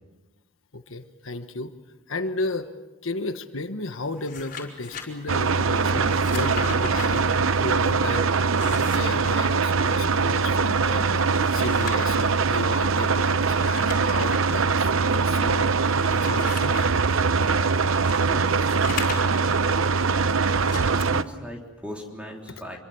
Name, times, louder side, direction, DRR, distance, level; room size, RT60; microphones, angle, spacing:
voice 1, 0.7-1.7 2.1-2.7 3.0-7.3 7.6-8.3 8.6-15.7 16.1-16.9, left 2 dB, 70° left, 8 dB, 1.3 m, -34 dB
sound 1, 4.0-5.1 6.0-7.1 8.4-9.4 11.1-12.2 13.5-14.5 15.0-15.1 15.8-17.2 18.1-19.5 20.6-21.0, left 5 dB, 40° left, 4.6 m, -38 dB
sound 2, 5.3-21.2, right 4 dB, 80° right, 0.8 m, -22 dB
voice 2, 18.0-18.7 19.0-19.9 21.1-22.8, equal, 5° right, 0 dB, 3.6 m, -39 dB
26.5 x 23.5 x 7.1 m, 1.1 s
head